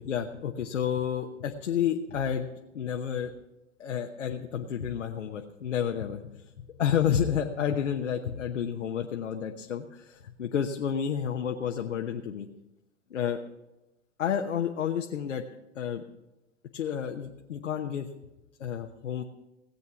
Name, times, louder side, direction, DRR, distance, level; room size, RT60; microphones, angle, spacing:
voice 1, 0.0-3.3 3.8-6.5 6.8-12.5 13.1-13.4 14.2-15.4 15.7-16.0 16.7-18.1 18.6-19.2, left 8 dB, 80° left, 3 dB, 1.0 m, -30 dB
17.5 x 8.1 x 5.9 m, 0.97 s
hypercardioid pair, 105°, 37 cm